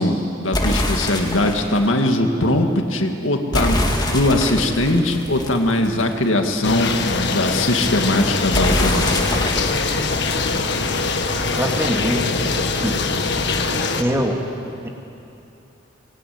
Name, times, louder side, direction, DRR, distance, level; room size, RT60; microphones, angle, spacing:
voice 1, 0.0-9.3, left 1 dB, 85° left, 4 dB, 2.2 m, -20 dB
sound 1, 0.5-1.8 3.5-6.2 8.5-11.2, left 1 dB, 20° left, 2.2 m, -24 dB
sound 2, 6.6-14.0, left 3 dB, 60° left, 1.6 m, -22 dB
voice 2, 11.5-12.4 12.7-13.0 14.0-14.4 14.8-14.9, equal, 15° right, 1 dB, 2.5 m, -23 dB
22.5 x 20.5 x 9.6 m, 2.7 s
head